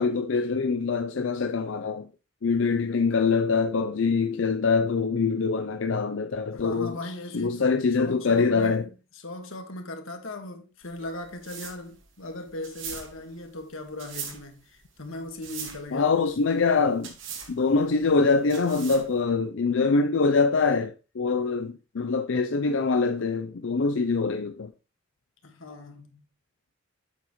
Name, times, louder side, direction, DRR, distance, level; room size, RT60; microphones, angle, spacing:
voice 1, 0.0-2.1 2.4-8.9 15.9-17.1 17.5-24.7, left 4 dB, 70° left, 0.5 m, -24 dB
voice 2, 6.5-7.6 8.0-16.2 25.4-26.2, left 2 dB, 90° left, 1.6 m, -39 dB
sound 1, 10.8-19.2, right 7 dB, 70° right, 2.0 m, -41 dB
8.2 x 7.0 x 3.1 m
head